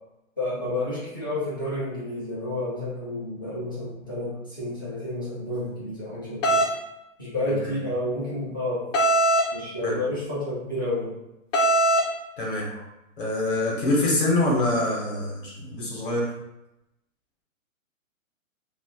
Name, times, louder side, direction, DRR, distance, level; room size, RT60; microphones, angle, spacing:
voice 1, 0.4-6.6 7.2-8.9 9.5-11.2, left 1 dB, 15° left, -10 dB, 0.4 m, -30 dB
sound 1, 6.4-6.7 8.9-9.5 11.5-12.1, right 1 dB, 65° left, 0.7 m, -20 dB
voice 2, 12.4-12.8 13.2-16.3, left 1 dB, 40° left, -3 dB, 0.9 m, -25 dB
2.3 x 2.3 x 3.5 m, 0.90 s
hypercardioid pair, 165°, 41 cm